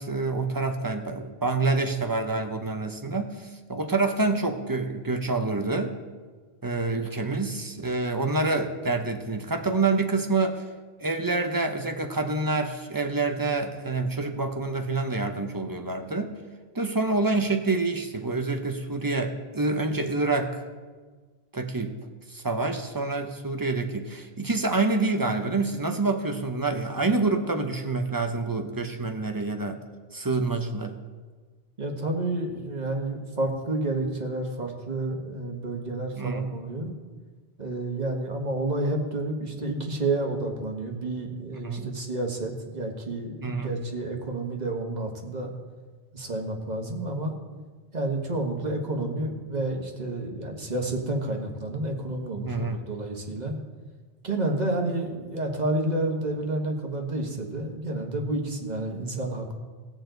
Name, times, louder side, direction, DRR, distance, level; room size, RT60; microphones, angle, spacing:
voice 1, 0.0-6.0 6.6-10.6 11.0-16.3 16.7-20.6 21.5-21.9 22.3-29.8 30.1-31.0 36.2-36.5 41.6-42.0 43.4-43.7 52.4-52.8, right 3 dB, 20° right, 5 dB, 0.8 m, -27 dB
voice 2, 31.8-36.9 37.6-45.5 46.1-47.3 47.9-53.5 54.2-59.5, right 2 dB, 40° right, 2 dB, 1.5 m, -30 dB
19.0 x 7.0 x 3.9 m, 1.4 s
omnidirectional pair, 1.1 m